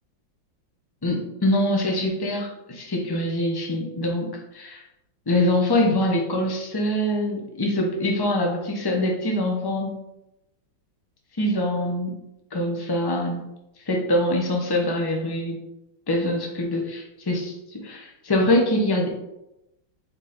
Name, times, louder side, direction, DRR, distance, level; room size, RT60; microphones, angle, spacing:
voice 1, 1.0-4.8 5.3-10.0 11.4-12.1 12.5-13.5 13.8-15.6 16.1-19.1, left 1 dB, 15° left, 0 dB, 0.8 m, -24 dB
5.0 x 4.4 x 5.1 m, 0.89 s
omnidirectional pair, 2.1 m